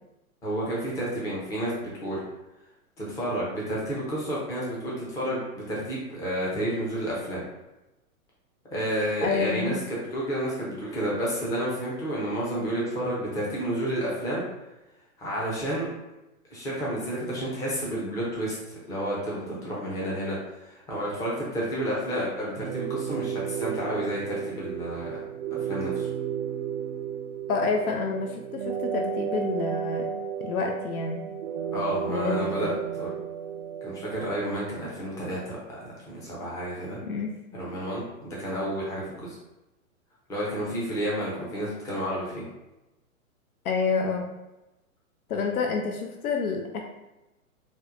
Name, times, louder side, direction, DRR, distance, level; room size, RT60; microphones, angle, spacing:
voice 1, 0.4-2.2 3.0-7.4 8.7-14.4 15.2-15.9 16.5-25.2 25.6-26.1 31.7-33.1 33.8-37.0 37.5-39.4 40.3-42.4, equal, 10° left, -6 dB, 0.4 m, -31 dB
voice 2, 9.2-9.8 27.5-30.1 30.4-31.2 32.1-32.8 37.1-37.3 43.6-44.4 45.3-46.8, left 5 dB, 85° left, 2 dB, 0.6 m, -28 dB
sound 1, 22.6-34.6, right 8 dB, 55° right, 0.5 m, -33 dB
4.3 x 2.2 x 2.4 m, 0.98 s
hypercardioid pair, 130°, 42 cm